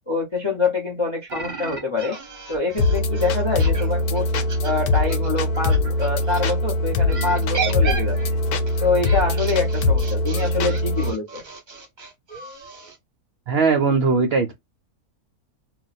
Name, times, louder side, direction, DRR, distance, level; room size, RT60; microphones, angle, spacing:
voice 1, 0.1-2.2 2.5-4.3 4.6-8.2 8.8-11.4, left 4 dB, 40° left, 0.4 m, -25 dB
sound 1, 1.3-6.5 7.1-13.0, right 5 dB, 40° right, 0.7 m, -34 dB
sound 2, 2.8-11.1, left 2 dB, 80° left, 1.1 m, -22 dB
voice 2, 13.5-14.5, right 4 dB, 70° right, 0.6 m, -19 dB
2.4 x 2.2 x 3.9 m
omnidirectional pair, 1.6 m